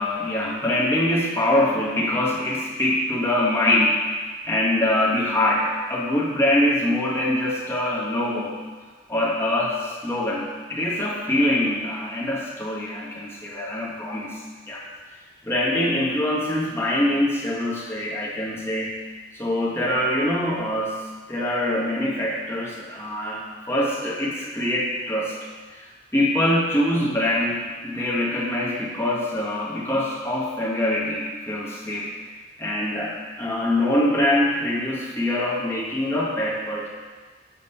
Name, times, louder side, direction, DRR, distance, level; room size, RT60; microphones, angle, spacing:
voice 1, 0.0-4.0 4.5-8.6 9.1-14.4 14.7-14.9 15.4-19.0 19.3-25.4 25.7-32.1 32.6-36.9, left 1 dB, 15° left, -5 dB, 1.0 m, -24 dB
6.9 x 3.0 x 5.4 m, 1.4 s
head